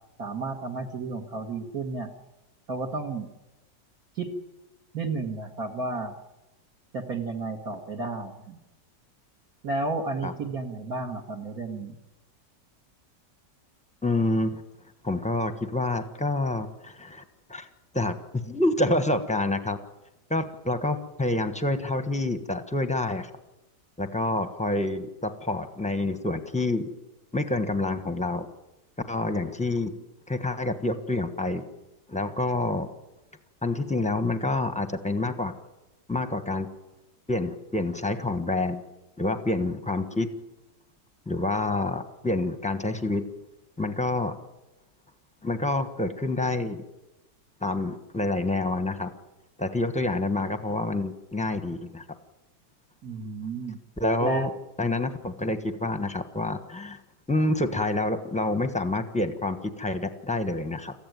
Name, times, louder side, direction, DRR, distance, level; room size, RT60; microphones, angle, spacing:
voice 1, 0.2-2.1 2.7-3.3 4.2-4.3 4.9-6.1 6.9-8.6 9.6-12.0 53.0-53.8 54.2-54.5, right 3 dB, 55° right, 1 dB, 2.0 m, -32 dB
voice 2, 14.0-14.5 15.0-17.2 17.5-17.7 17.9-19.8 20.3-23.3 24.0-26.9 27.3-28.5 29.1-29.9 30.3-31.6 32.1-32.9 33.6-35.5 36.1-36.7 37.3-38.8 39.2-40.3 41.3-43.2 43.8-44.4 45.4-46.8 47.6-49.1 49.6-52.0 54.0-54.5 54.8-57.0 57.3-60.9, left 2 dB, 5° left, 8 dB, 1.0 m, -27 dB
23.0 x 15.0 x 9.4 m, 1.0 s
omnidirectional pair, 1.9 m